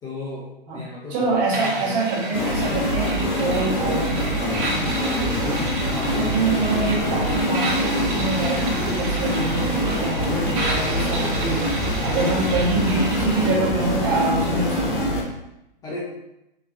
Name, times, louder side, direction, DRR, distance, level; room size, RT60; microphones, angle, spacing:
voice 1, 0.0-2.1 5.9-6.3 12.0-12.3 13.5-13.6 15.8-16.0, left 2 dB, 10° left, -6 dB, 0.5 m, -35 dB
voice 2, 1.1-5.7 6.1-11.7 12.0-15.1, right 3 dB, 35° right, -4 dB, 1.2 m, -25 dB
sound 1, 1.5-13.5, right 1 dB, 60° right, 1.2 m, -32 dB
sound 2, 2.3-15.2, equal, 60° left, 1.2 m, -24 dB
4.3 x 2.9 x 2.8 m, 0.87 s
hypercardioid pair, 125°, 29 cm